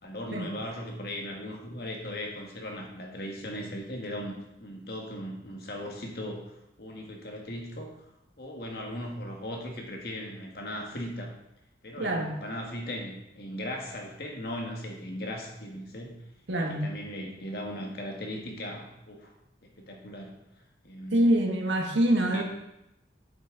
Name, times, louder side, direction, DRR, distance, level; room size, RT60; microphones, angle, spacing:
voice 1, 0.0-4.3 4.6-8.0 8.4-11.3 11.8-16.2 16.6-19.3 19.6-20.3 20.8-21.3 22.3-22.4, left 1 dB, 55° left, 1 dB, 1.7 m, -38 dB
voice 2, 12.0-12.3 16.5-16.9 21.1-22.4, right 1 dB, 90° right, 2 dB, 1.6 m, -25 dB
8.3 x 8.2 x 3.9 m, 0.85 s
head